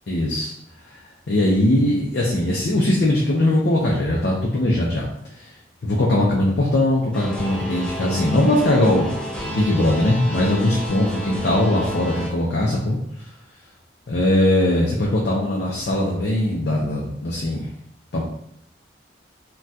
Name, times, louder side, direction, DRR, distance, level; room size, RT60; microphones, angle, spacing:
voice 1, 0.1-0.5 1.3-5.1 5.4-5.5 5.8-13.0 14.1-17.7 18.1-18.2, left 1 dB, 60° left, -3 dB, 0.5 m, -20 dB
sound 1, 7.1-12.3, equal, 5° left, 0.4 m, -31 dB
4.0 x 2.2 x 2.3 m, 0.72 s
head